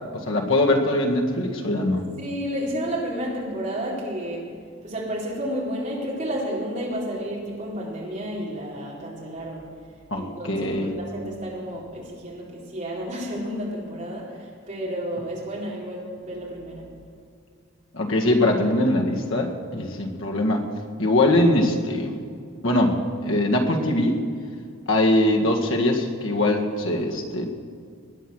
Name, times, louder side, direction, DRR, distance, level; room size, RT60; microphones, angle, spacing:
voice 1, 0.1-2.1 10.1-10.9 17.9-20.6 21.0-22.1 22.6-23.0 23.2-24.2 24.9-27.5, left 1 dB, 70° left, 1 dB, 1.9 m, -22 dB
voice 2, 2.2-4.5 4.8-9.7 10.1-16.9, equal, 35° right, -4 dB, 3.9 m, -31 dB
19.0 x 10.5 x 6.3 m, 2.2 s
head